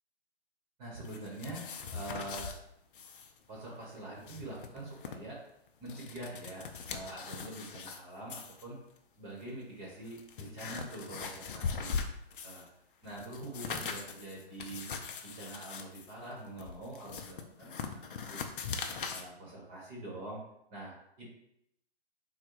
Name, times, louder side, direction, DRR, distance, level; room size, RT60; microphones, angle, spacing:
voice 1, 0.8-1.6 1.9-2.5 3.5-5.4 5.8-8.8 9.2-12.1 12.4-12.6 13.0-14.9 15.2-18.5 19.1-20.4 20.7-21.3, right 1 dB, 20° right, -4 dB, 1.1 m, -45 dB
sound 1, 1.0-2.6 2.9-3.3 3.6-3.7 4.1-5.2 5.7-8.0 8.3-8.6 9.4-9.5 10.0-12.7 13.0-19.2, left 5 dB, 55° left, 0.6 m, -40 dB
3.9 x 2.2 x 4.6 m, 0.77 s
hypercardioid pair, 140°, 32 cm